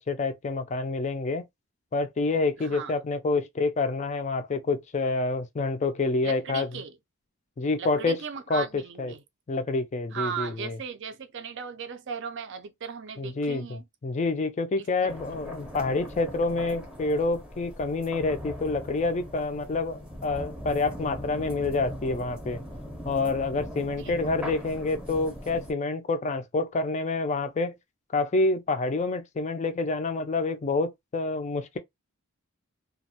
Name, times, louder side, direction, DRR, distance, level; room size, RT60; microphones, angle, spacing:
voice 1, 0.0-1.4 1.9-6.7 7.6-8.2 8.5-9.1 9.5-10.8 13.2-22.6 23.1-27.7 28.1-31.8, left 3 dB, 30° left, 0.3 m, -28 dB
voice 2, 2.6-2.9 6.2-7.0 7.8-9.2 10.1-13.8 14.8-15.2 24.0-24.1, right 6 dB, 55° right, 0.4 m, -37 dB
sound 1, 15.1-25.7, equal, 5° right, 0.7 m, -40 dB
2.3 x 2.0 x 2.7 m
head